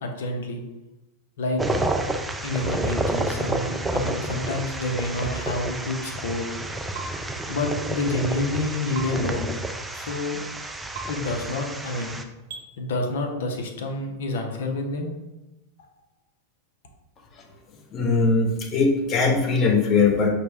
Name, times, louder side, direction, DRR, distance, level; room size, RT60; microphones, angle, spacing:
voice 1, 0.0-0.6 1.4-1.6 2.4-6.5 7.5-9.6 9.9-10.5 11.1-12.2 12.8-15.1, left 2 dB, 75° left, 3 dB, 0.8 m, -28 dB
sound 1, 1.6-12.2, right 1 dB, 10° right, 0.4 m, -30 dB
sound 2, 6.9-7.1 8.9-9.1 10.9-11.1 12.5-12.6, right 5 dB, 70° right, 1.1 m, -35 dB
voice 2, 17.9-20.3, left 4 dB, 35° left, 2 dB, 0.9 m, -20 dB
5.8 x 2.3 x 3.5 m, 1.0 s
hypercardioid pair, 110°, 0 cm